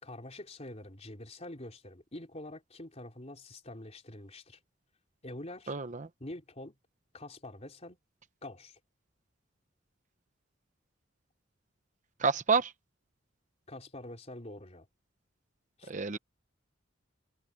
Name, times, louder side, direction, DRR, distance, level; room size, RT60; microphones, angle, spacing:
voice 1, 0.0-4.6 5.2-5.8 6.2-6.8 7.1-8.0 8.4-8.8 13.7-14.9 15.8-15.9, left 1 dB, 35° left, 3.8 m, -45 dB
voice 2, 5.7-6.1 12.2-12.7 15.9-16.2, right 5 dB, 40° right, 0.8 m, -28 dB
head